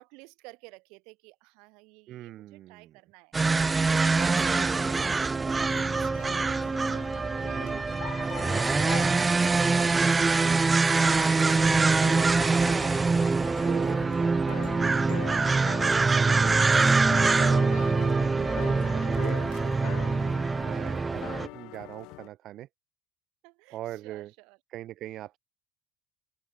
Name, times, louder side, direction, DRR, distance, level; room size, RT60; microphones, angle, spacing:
voice 1, 0.0-3.6 3.8-6.8 7.2-7.7 8.5-10.8 19.3-20.5 23.4-24.6, right 28 dB, 70° right, 5.9 m, -51 dB
voice 2, 2.1-3.0 7.5-8.3 13.6-19.4 20.6-22.7 23.7-24.3 24.7-25.4, right 13 dB, 50° right, 5.3 m, -42 dB
sound 1, 3.3-21.5, right 4 dB, 15° right, 0.7 m, -24 dB
sound 2, 5.6-22.3, left 24 dB, 65° left, 1.0 m, -42 dB
open air
supercardioid pair, 120°, 0 cm